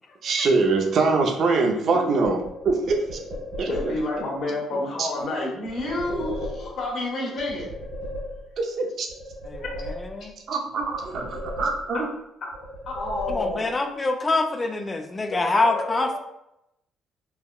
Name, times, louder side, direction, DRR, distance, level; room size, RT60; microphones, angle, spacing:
voice 1, 0.2-2.4 2.7-3.2 3.6-3.9 5.0-5.1 8.8-9.1 10.5-12.1, right 3 dB, 60° right, 2 dB, 0.5 m, -23 dB
sound 1, 2.3-4.2 5.7-7.0 7.4-8.7 9.1-10.5 10.8-12.2 12.5-13.9, equal, 80° right, 1.3 m, -36 dB
voice 2, 3.7-7.7 9.6-9.7 11.9-12.0 12.9-13.7 15.7-16.0, left 2 dB, 60° left, -3 dB, 1.0 m, -29 dB
voice 3, 9.4-10.3 13.3-16.2, left 3 dB, 25° left, 5 dB, 0.4 m, -25 dB
3.4 x 2.1 x 2.3 m, 0.84 s
cardioid pair, 95°, 0 cm